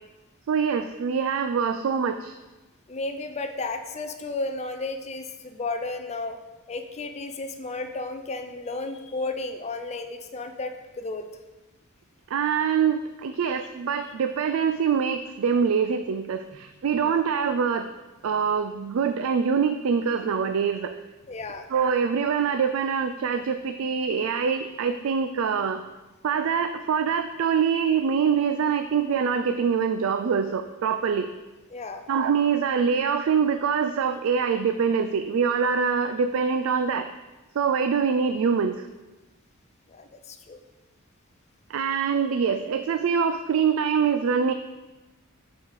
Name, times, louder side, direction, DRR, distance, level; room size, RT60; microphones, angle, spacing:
voice 1, 0.5-2.3 12.3-17.9 18.2-20.9 21.7-25.8 26.2-31.3 32.1-37.1 37.6-38.9 41.7-44.5, right 6 dB, 70° right, 8 dB, 0.3 m, -24 dB
voice 2, 2.9-6.4 6.7-11.3 17.0-17.2 21.3-21.7 31.7-32.0 39.9-40.6, left 3 dB, 30° left, 6 dB, 0.5 m, -33 dB
8.4 x 4.1 x 4.7 m, 1.1 s
head